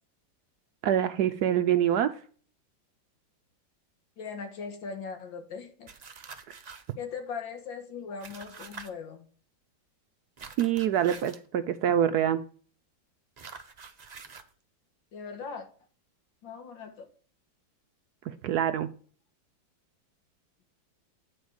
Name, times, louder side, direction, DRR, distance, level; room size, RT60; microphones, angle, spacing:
voice 1, 0.8-2.1 10.6-12.4 18.3-18.9, right 10 dB, 70° right, 11 dB, 1.0 m, -25 dB
voice 2, 4.2-5.9 7.0-9.3 15.1-15.7 16.4-17.1, left 5 dB, 80° left, 5 dB, 2.3 m, -39 dB
sound 1, 5.9-6.9 8.2-8.9 10.4-11.5 13.4-14.5, right 5 dB, 55° right, 0.4 m, -46 dB
9.4 x 4.3 x 6.3 m, 0.43 s
omnidirectional pair, 2.0 m